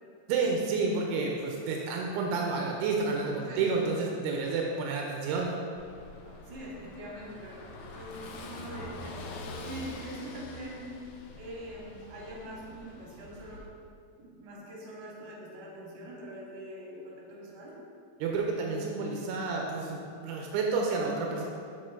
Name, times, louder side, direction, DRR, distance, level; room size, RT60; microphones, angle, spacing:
voice 1, 0.3-5.5 18.2-21.4, right 4 dB, 90° right, 0 dB, 2.6 m, -30 dB
Car passing by / Engine, 5.8-13.7, left 2 dB, 85° left, 2.0 m, -45 dB
voice 2, 6.3-10.8 11.4-13.6 14.2-17.8, right 1 dB, 70° right, -5 dB, 2.9 m, -43 dB
6.3 x 6.2 x 2.5 m, 2.3 s
omnidirectional pair, 4.5 m